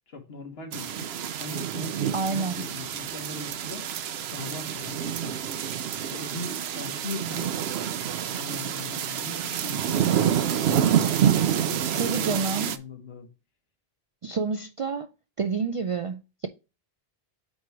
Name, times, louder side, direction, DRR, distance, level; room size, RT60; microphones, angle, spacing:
voice 1, 0.1-1.1 1.4-3.9 4.3-5.3 6.1-7.5 8.3-11.0 11.4-13.3, left 2 dB, 80° left, 1.5 m, -40 dB
sound 1, 0.7-12.8, right 9 dB, 90° right, 0.9 m, -27 dB
voice 2, 2.1-2.7 12.0-12.8 14.2-15.1 15.4-16.5, right 5 dB, 55° right, 0.3 m, -28 dB
8.7 x 3.0 x 4.6 m
omnidirectional pair, 1.0 m